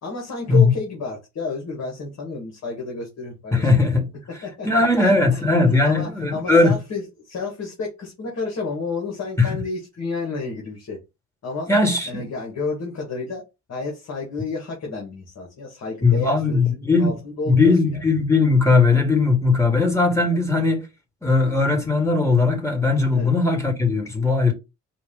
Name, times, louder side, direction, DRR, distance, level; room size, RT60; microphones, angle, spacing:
voice 1, 0.0-3.7 4.4-4.7 5.0-5.4 5.8-11.0 11.4-11.7 12.1-13.4 13.7-18.0 23.1-23.3, left 3 dB, 60° left, 1.8 m, -31 dB
voice 2, 3.5-4.1 4.6-6.8 9.4-9.6 11.7-12.3 16.0-17.1 17.5-20.9 21.2-24.5, left 3 dB, 10° left, 1.7 m, -18 dB
4.8 x 2.6 x 3.8 m
cardioid pair, 90°, 30 cm